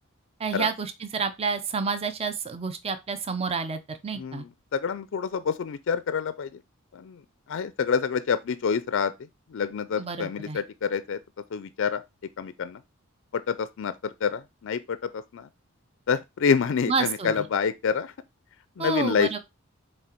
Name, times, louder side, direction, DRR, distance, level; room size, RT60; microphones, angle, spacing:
voice 1, 0.4-4.4 10.0-10.6 16.9-17.4 18.8-19.4, right 5 dB, 30° right, 0.5 m, -29 dB
voice 2, 4.1-6.6 6.9-7.2 7.5-9.1 9.5-11.2 11.5-12.0 12.4-12.8 13.3-15.5 16.1-18.1 18.8-19.4, left 6 dB, 60° left, 0.4 m, -27 dB
7.5 x 3.3 x 4.4 m
head